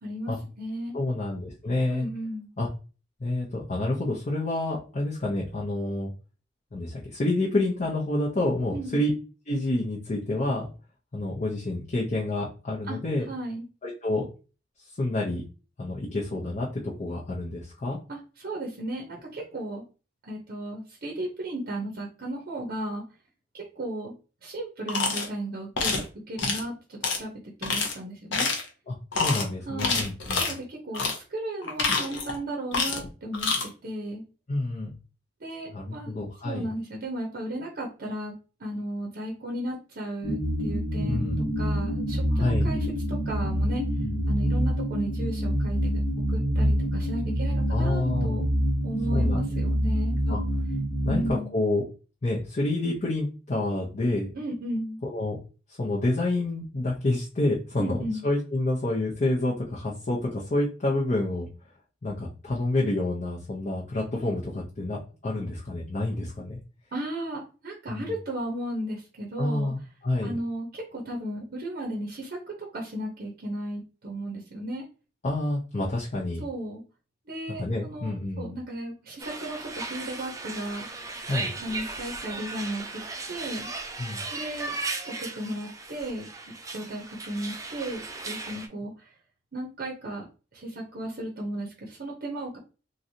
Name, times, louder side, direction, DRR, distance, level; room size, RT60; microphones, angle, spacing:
voice 1, 0.0-1.0 1.9-2.5 8.7-9.0 12.9-13.0 13.3-13.6 18.1-19.8 20.2-23.0 23.5-24.1 24.4-25.9 26.3-27.3 27.6-28.5 29.7-30.0 30.3-33.5 33.8-34.2 35.4-36.1 36.4-38.3 38.6-41.3 41.6-43.8 44.3-46.0 46.3-48.5 48.8-50.4 51.0-51.5 54.3-55.0 57.8-58.2 66.9-69.7 70.2-74.9 76.4-76.8 77.3-80.9 81.6-83.7 84.3-84.7 85.0-89.1 89.5-90.2 90.5-92.6, right 1 dB, 50° right, -1 dB, 0.7 m, -35 dB
voice 2, 0.9-2.0 2.6-2.7 3.2-6.1 6.7-9.1 9.5-10.7 11.1-13.2 13.8-14.2 15.0-15.4 15.8-18.0 28.9-30.5 34.5-34.9 35.7-36.7 41.0-41.4 42.3-42.7 44.0-44.2 47.7-48.4 49.1-49.4 50.3-50.4 51.0-51.8 52.2-54.3 55.0-55.4 55.8-61.5 62.0-66.6 67.9-68.1 69.4-70.3 75.2-76.4 77.6-78.6 81.3-81.5 84.0-84.2, left 2 dB, 40° left, -4 dB, 0.6 m, -28 dB
sound 1, 24.9-25.3 25.8-26.0 26.4-26.6 27.0-27.2 27.6-27.9 28.3-28.7 29.1-29.4 29.8-30.5 30.9-31.2 31.6-32.4 32.7-33.1 33.3-33.6, left 4 dB, 70° left, 0.8 m, -27 dB
sound 2, 40.2-51.3, equal, 5° left, 1.0 m, -26 dB
sound 3, 79.2-88.7, right 3 dB, 15° right, 0.3 m, -36 dB
3.1 x 2.6 x 2.6 m, 0.34 s
head